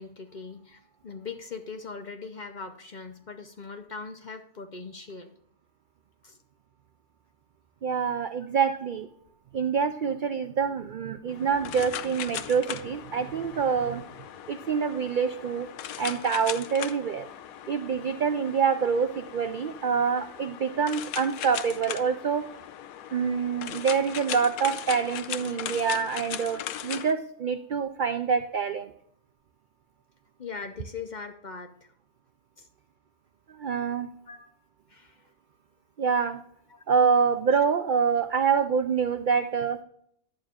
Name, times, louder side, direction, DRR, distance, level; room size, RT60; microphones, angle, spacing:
voice 1, 0.0-5.3 6.2-6.4 8.6-8.8 12.5-12.6 30.4-31.9 32.6-32.7 34.3-34.5 34.9-35.3 36.7-36.8, left 4 dB, 45° left, 6 dB, 0.7 m, -41 dB
voice 2, 7.8-9.1 9.5-14.0 14.5-15.7 16.0-17.3 17.7-22.4 23.1-28.9 33.5-34.1 36.0-36.4 36.9-39.8, right 6 dB, 80° right, 9 dB, 0.4 m, -26 dB
sound 1, 11.3-27.1, left 10 dB, 90° left, 1.1 m, -38 dB
11.0 x 8.9 x 2.4 m, 0.69 s
omnidirectional pair, 1.4 m